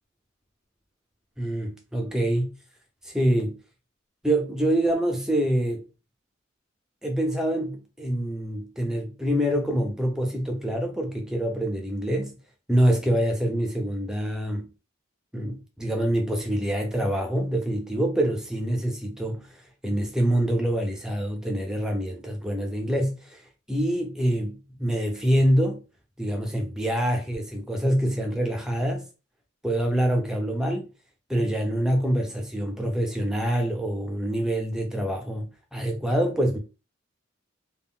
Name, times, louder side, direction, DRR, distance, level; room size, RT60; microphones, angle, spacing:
voice 1, 1.4-2.5 3.1-3.6 4.2-5.8 7.0-12.4 12.7-14.7 15.3-19.5 19.8-23.4 23.7-25.8 26.2-29.0 29.6-30.9 31.3-36.6, right 1 dB, 5° right, 0.6 m, -25 dB
2.3 x 2.0 x 3.6 m
head